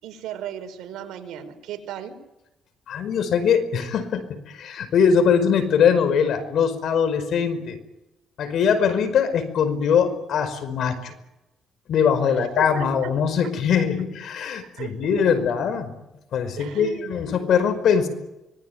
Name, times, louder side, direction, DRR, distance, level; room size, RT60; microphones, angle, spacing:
voice 1, 0.0-2.2 12.2-13.1 14.7-15.3 16.6-17.3, right 9 dB, 85° right, 6 dB, 5.1 m, -36 dB
voice 2, 2.9-7.8 8.4-11.1 11.9-15.9 16.3-18.1, left 7 dB, 70° left, 10 dB, 5.2 m, -22 dB
25.0 x 20.0 x 9.6 m, 0.95 s
cardioid pair, 90°, 0 cm